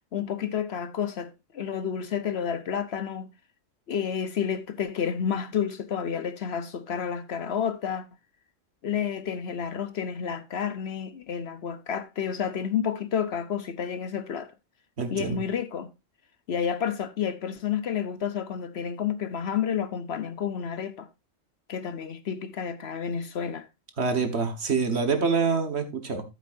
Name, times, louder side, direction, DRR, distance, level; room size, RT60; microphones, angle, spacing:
voice 1, 0.1-3.3 3.9-8.1 8.8-14.5 15.1-15.9 16.5-21.1 21.7-23.7, left 8 dB, 60° left, 0.9 m, -30 dB
voice 2, 15.0-15.4 24.0-26.2, right 5 dB, 55° right, 1.7 m, -26 dB
13.5 x 7.5 x 2.6 m
omnidirectional pair, 1.3 m